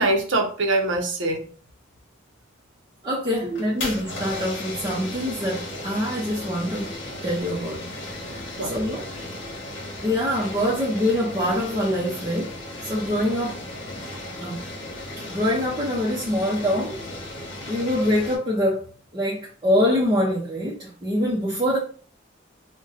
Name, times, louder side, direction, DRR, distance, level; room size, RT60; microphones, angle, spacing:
voice 1, 0.0-1.4 3.4-3.9 8.6-8.7, right 2 dB, 70° right, 0.7 m, -24 dB
voice 2, 3.0-6.9 7.2-7.8 8.1-9.0 10.0-12.5 12.8-13.6 14.4-14.6 15.3-17.0 17.7-18.9 19.1-21.8, left 1 dB, 20° right, 0.6 m, -24 dB
sound 1, 3.5-18.4, left 1 dB, 65° left, 1.0 m, -35 dB
2.6 x 2.2 x 3.9 m
head